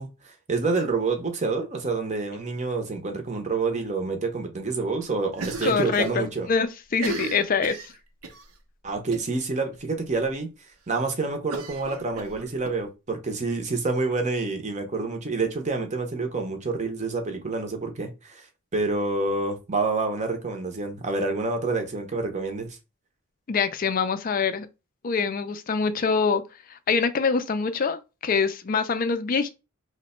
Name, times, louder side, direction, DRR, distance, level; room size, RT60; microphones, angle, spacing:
voice 1, 0.0-6.5 8.8-10.5 10.9-18.5 18.7-22.8, right 3 dB, 30° right, 0.7 m, -28 dB
Cough, 5.3-6.1 6.4-6.5 6.9-8.5 9.1-9.4 9.7-9.8 10.2-10.3 11.5-12.7, right 3 dB, 80° right, 0.7 m, -36 dB
voice 2, 5.6-7.9 23.5-24.7 25.0-26.4 26.7-29.5, left 5 dB, 40° left, 0.4 m, -25 dB
3.0 x 2.1 x 4.2 m
head